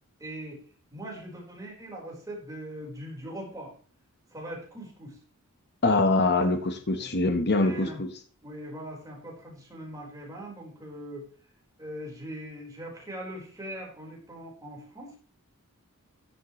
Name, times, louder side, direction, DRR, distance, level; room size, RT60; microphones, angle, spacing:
voice 1, 0.2-0.6 0.9-3.7 4.3-5.2 7.0-7.2 7.6-8.0 8.4-11.3 11.8-15.2, right 1 dB, 15° right, -3 dB, 4.6 m, -41 dB
voice 2, 5.8-8.1, left 2 dB, 50° left, 6 dB, 1.3 m, -24 dB
14.0 x 7.7 x 3.2 m, 0.41 s
head